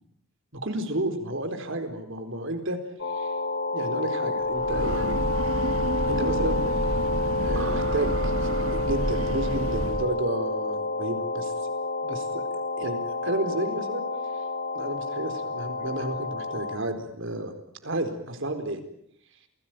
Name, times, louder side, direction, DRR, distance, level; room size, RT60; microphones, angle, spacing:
voice 1, 0.5-2.8 3.1-3.3 3.7-5.2 6.1-6.6 7.4-11.7 12.0-12.4 12.8-14.0 14.7-17.5 17.8-18.8, right 1 dB, 65° right, 7 dB, 4.2 m, -31 dB
sound 1, 3.0-16.8, left 2 dB, 55° left, 4.2 m, -29 dB
Breathing / Train, 4.5-10.2, right 1 dB, 85° right, 1.7 m, -30 dB
28.5 x 19.0 x 9.1 m, 0.72 s
head